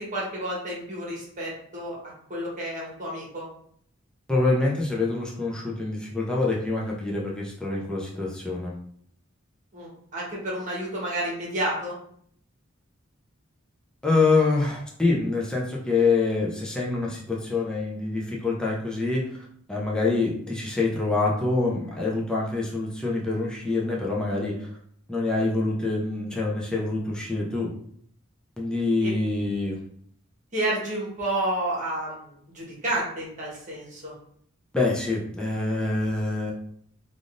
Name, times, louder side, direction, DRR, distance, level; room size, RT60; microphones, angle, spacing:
voice 1, 0.0-2.0 2.3-3.5 9.7-11.9 29.0-29.1 30.5-34.1, right 1 dB, 40° right, -4 dB, 1.1 m, -30 dB
voice 2, 4.3-8.7 14.0-24.7 25.1-27.7 28.6-29.8 34.7-36.5, left 3 dB, 5° left, -4 dB, 0.5 m, -26 dB
3.4 x 2.5 x 2.4 m, 0.64 s
head